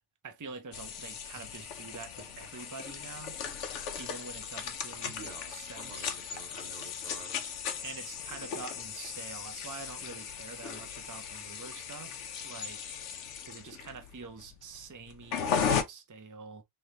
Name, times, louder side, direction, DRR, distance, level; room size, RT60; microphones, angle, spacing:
voice 1, 0.2-3.4 4.0-6.2 7.8-12.9 13.5-16.6, right 4 dB, 20° right, 0.5 m, -46 dB
sound 1, 0.7-15.8, left 7 dB, 85° left, 1.0 m, -37 dB
voice 2, 5.0-7.4, right 6 dB, 85° right, 1.2 m, -50 dB
3.8 x 3.3 x 3.0 m
omnidirectional pair, 1.2 m